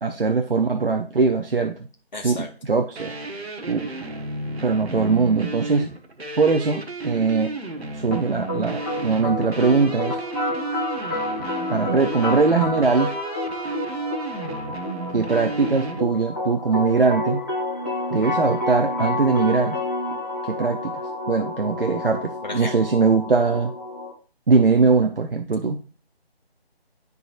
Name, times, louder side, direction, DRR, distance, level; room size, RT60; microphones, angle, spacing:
voice 1, 0.0-1.8 2.2-3.1 3.7-3.9 4.6-5.9 6.4-7.6 7.9-10.2 11.7-13.1 15.1-17.4 18.1-19.8 20.4-20.9 21.3-23.7 24.5-25.8, right 4 dB, 60° right, 4 dB, 0.8 m, -21 dB
voice 2, 2.1-2.5 22.4-22.7, left 2 dB, 45° left, 2 dB, 1.7 m, -32 dB
sound 1, 3.0-16.0, right 2 dB, 80° right, 1.3 m, -33 dB
sound 2, 8.1-24.1, left 2 dB, 15° left, 1.3 m, -29 dB
12.0 x 4.1 x 2.5 m, 0.38 s
figure-of-eight pair, 175°, 31 cm